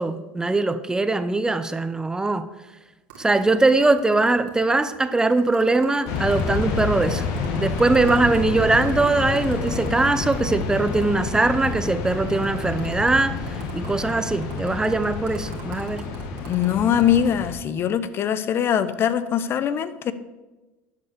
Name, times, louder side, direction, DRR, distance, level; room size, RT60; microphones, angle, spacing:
voice 1, 0.0-2.5 3.2-7.3 7.6-16.0, right 2 dB, 10° right, 0.6 m, -21 dB
sound 1, 3.1-11.1 11.3-11.4 11.6-17.3, right 7 dB, 85° right, 2.6 m, -43 dB
sound 2, 6.1-17.5, left 4 dB, 65° left, 1.8 m, -29 dB
voice 2, 16.5-20.1, left 9 dB, 45° left, 0.7 m, -22 dB
10.5 x 5.5 x 6.5 m
supercardioid pair, 100°, 6 cm